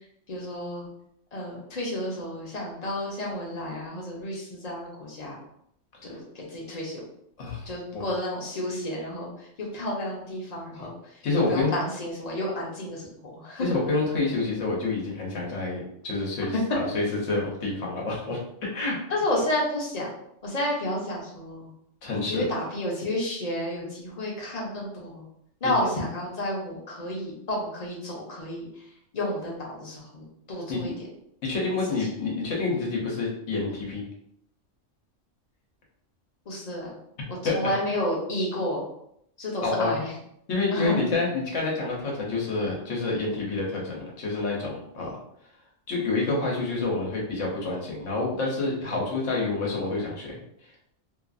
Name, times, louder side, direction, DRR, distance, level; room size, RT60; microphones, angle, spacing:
voice 1, 0.3-0.9 1.3-5.4 6.0-7.0 7.6-13.1 13.3-13.7 16.5-16.6 19.1-20.1 20.4-21.7 22.2-25.2 25.6-30.9 36.5-37.0 37.3-38.9 39.4-40.1 40.7-41.0, left 1 dB, 40° left, -3 dB, 0.7 m, -31 dB
voice 2, 7.4-8.0 11.2-11.7 13.6-19.0 22.0-22.4 30.7-30.9 31.4-34.0 37.4-37.6 39.6-40.0 40.5-45.1 45.9-50.4, left 3 dB, 75° left, -3 dB, 1.2 m, -28 dB
2.8 x 2.4 x 2.5 m, 0.73 s
omnidirectional pair, 1.3 m